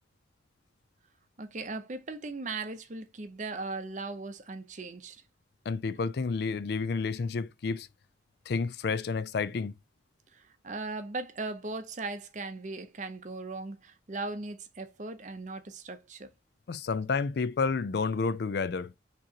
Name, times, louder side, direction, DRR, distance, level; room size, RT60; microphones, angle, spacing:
voice 1, 1.4-5.2 10.3-16.3, right 3 dB, 40° right, 0.6 m, -38 dB
voice 2, 5.7-7.9 8.5-9.7 16.7-18.9, left 4 dB, 60° left, 0.4 m, -30 dB
6.1 x 3.0 x 2.8 m
head